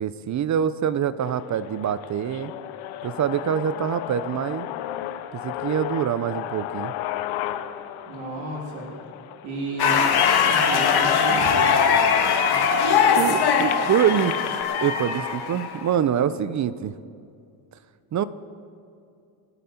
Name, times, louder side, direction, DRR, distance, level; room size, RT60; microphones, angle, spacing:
voice 1, 0.0-2.5 3.0-4.7 5.3-6.9 13.2-14.4 14.8-16.9 18.1-18.2, right 9 dB, 35° right, 15 dB, 0.6 m, -25 dB
sound 1, 1.2-11.1 11.8-11.9 12.2-14.6, left 13 dB, 80° left, 0.9 m, -35 dB
voice 2, 8.1-8.9 9.4-10.0 10.4-12.0, right 1 dB, 90° right, -2 dB, 3.1 m, -32 dB
sound 2, 9.8-15.9, left 6 dB, 50° left, 1.6 m, -21 dB
27.0 x 9.4 x 4.3 m, 2.5 s
cardioid pair, 110°, 48 cm